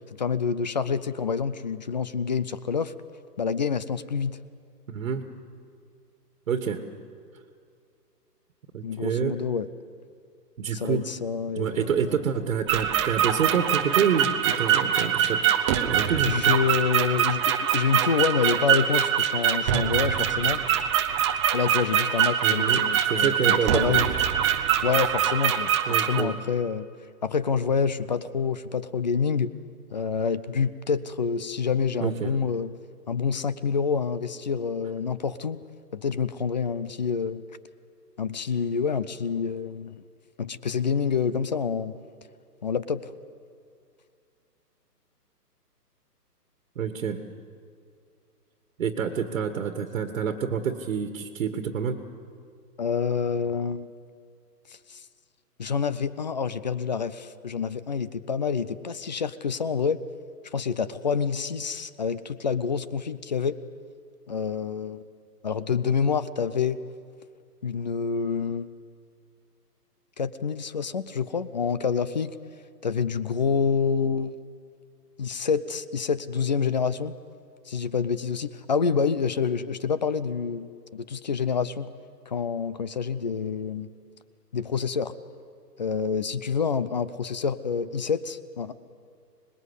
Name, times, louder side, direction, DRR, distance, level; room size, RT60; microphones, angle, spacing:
voice 1, 0.2-2.9 3.4-4.4 8.8-9.7 10.8-12.0 16.3-20.6 21.5-24.0 24.8-25.7 26.1-26.9 27.2-29.5 29.9-32.7 33.1-35.6 35.9-37.4 38.2-40.0 40.4-41.9 42.6-43.1 52.8-53.9 54.9-55.0 55.6-60.0 60.5-63.6 64.3-65.0 65.4-66.8 67.6-68.7 70.2-72.3 72.8-74.4 75.2-77.1 77.7-81.9 82.3-83.9 84.5-85.1 85.8-88.7, left 6 dB, 30° left, 15 dB, 0.5 m, -27 dB
voice 2, 4.9-5.3 6.5-6.8 8.7-9.4 10.6-11.1 11.6-16.6 22.4-24.0 25.9-26.4 32.0-32.3 46.8-47.2 48.8-52.0, right 7 dB, 50° right, 7 dB, 1.8 m, -28 dB
sound 1, 12.7-26.2, right 9 dB, 20° right, 0.8 m, -24 dB
26.0 x 20.5 x 8.1 m, 2.3 s
hypercardioid pair, 150°, 49 cm